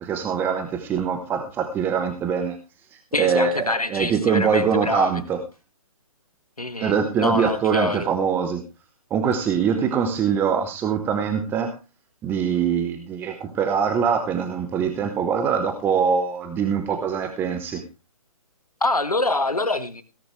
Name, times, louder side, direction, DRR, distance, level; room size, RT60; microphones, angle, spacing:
voice 1, 0.0-2.6 2.9-5.4 6.8-8.6 9.1-11.7 12.2-17.8, right 6 dB, 10° right, 7 dB, 1.1 m, -23 dB
voice 2, 3.1-5.2 6.6-8.1 18.8-20.0, left 2 dB, 80° left, 10 dB, 2.2 m, -25 dB
17.0 x 11.5 x 3.2 m, 0.29 s
figure-of-eight pair, 135°, 19 cm